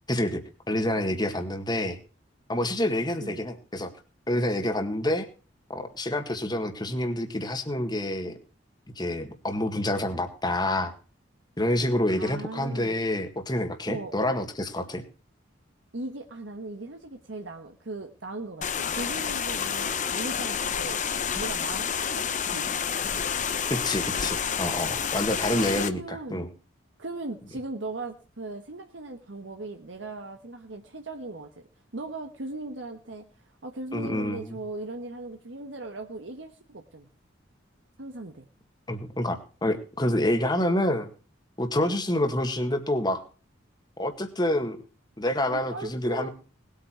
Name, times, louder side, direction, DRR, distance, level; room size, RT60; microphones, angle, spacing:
voice 1, 0.1-0.4 0.7-2.0 2.5-3.9 4.3-5.3 5.7-8.3 8.9-10.9 11.6-15.0 23.7-26.5 33.9-34.6 38.9-41.1 41.6-43.2 44.0-44.8 45.2-46.3, left 1 dB, 20° left, 7 dB, 1.8 m, -27 dB
voice 2, 12.1-13.0 13.9-14.2 15.9-22.7 25.6-26.5 27.0-31.5 31.9-37.1 38.0-38.5 45.5-46.3, right 2 dB, 70° right, 5 dB, 1.2 m, -38 dB
sound 1, 18.6-25.9, left 7 dB, 40° left, 0.9 m, -29 dB
19.5 x 8.7 x 4.6 m, 0.36 s
head